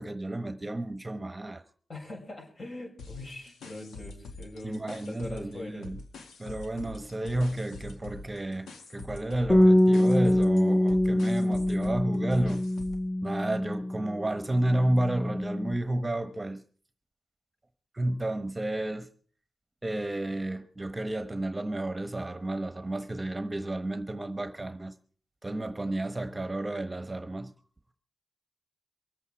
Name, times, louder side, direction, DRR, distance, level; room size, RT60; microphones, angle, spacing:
voice 1, 0.0-1.6 4.6-6.0 6.4-12.6 13.2-16.6 17.9-19.1 19.8-24.9 25.4-27.5, right 1 dB, 20° right, 1.1 m, -31 dB
voice 2, 1.9-5.9, left 2 dB, 45° left, 6.7 m, -42 dB
sound 1, 3.0-5.5 5.8-13.1, left 3 dB, 90° left, 1.9 m, -45 dB
Bass guitar, 9.5-14.2 14.5-15.7, left 1 dB, 25° left, 2.0 m, -24 dB
24.0 x 8.4 x 4.7 m
cardioid pair, 60°, 0 cm